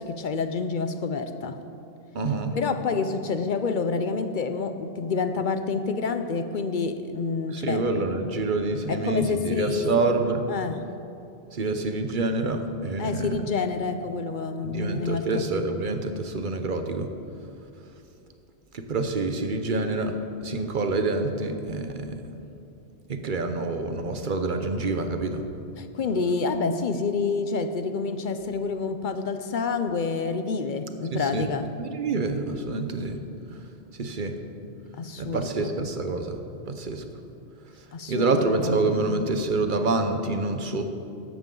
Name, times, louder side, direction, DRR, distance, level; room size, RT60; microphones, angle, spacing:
voice 1, 0.0-1.6 2.5-7.8 8.9-10.0 10.5-10.8 13.0-15.5 25.8-31.7 34.9-35.7 37.9-39.0, left 4 dB, 55° left, 9 dB, 0.7 m, -28 dB
voice 2, 2.1-2.5 7.5-10.5 11.5-13.4 14.6-17.1 18.7-22.2 23.1-25.4 31.1-31.5 31.8-33.2 34.0-34.4 35.2-36.4 36.7-37.0 38.1-41.0, right 3 dB, 50° right, 6 dB, 1.0 m, -27 dB
14.0 x 11.0 x 3.8 m, 2.7 s
omnidirectional pair, 1.1 m